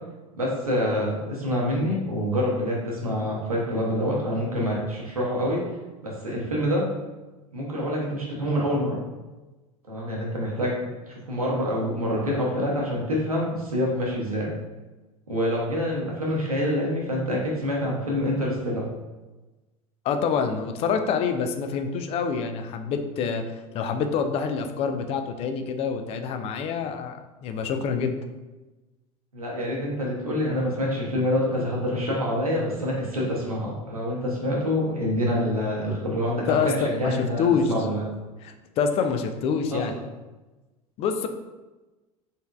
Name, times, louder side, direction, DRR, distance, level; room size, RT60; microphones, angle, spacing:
voice 1, 0.3-5.6 6.0-6.9 7.5-9.0 9.9-10.8 11.1-14.5 15.3-18.8 29.3-38.1 39.7-40.0, equal, 85° right, -3 dB, 0.8 m, -26 dB
voice 2, 20.0-28.2 36.5-37.7 38.4-39.9 41.0-41.3, left 6 dB, 35° left, 7 dB, 0.4 m, -26 dB
3.9 x 3.5 x 2.3 m, 1.1 s
figure-of-eight pair, 75°, 18 cm